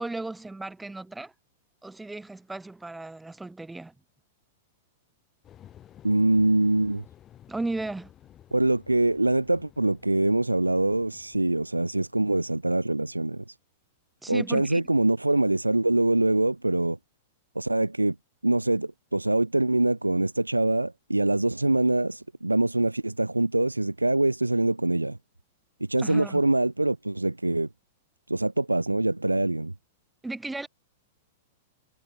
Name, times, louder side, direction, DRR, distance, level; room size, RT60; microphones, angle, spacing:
voice 1, 0.0-1.3 1.8-3.9 7.5-8.1 14.2-14.8 26.0-26.4 30.2-30.7, right 2 dB, 5° right, 1.6 m, -35 dB
sound 1, 5.4-12.9, left 11 dB, 25° left, 2.0 m, -53 dB
voice 2, 6.0-7.0 8.5-13.6 14.3-17.0 17.6-18.2 18.4-25.2 25.8-27.7 28.3-29.7, right 2 dB, 85° right, 0.3 m, -24 dB
figure-of-eight pair, 100°, 0 cm